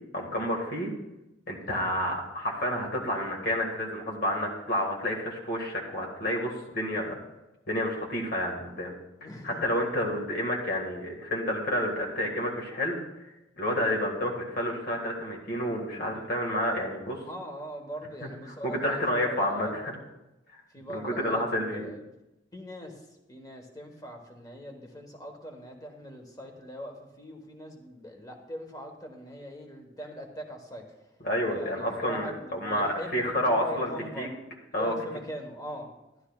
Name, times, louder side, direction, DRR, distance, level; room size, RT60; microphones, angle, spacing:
voice 1, 0.1-0.9 1.5-7.2 7.7-8.9 9.4-13.0 13.6-17.2 18.6-19.9 20.9-21.8 31.2-33.9 34.2-34.3 34.7-34.9, left 1 dB, 55° left, 0 dB, 1.9 m, -29 dB
voice 2, 9.2-9.6 17.2-19.7 20.7-22.0 22.5-30.9 31.5-34.4 34.7-35.9, equal, 20° left, 3 dB, 1.3 m, -41 dB
12.5 x 12.0 x 2.4 m, 0.96 s
head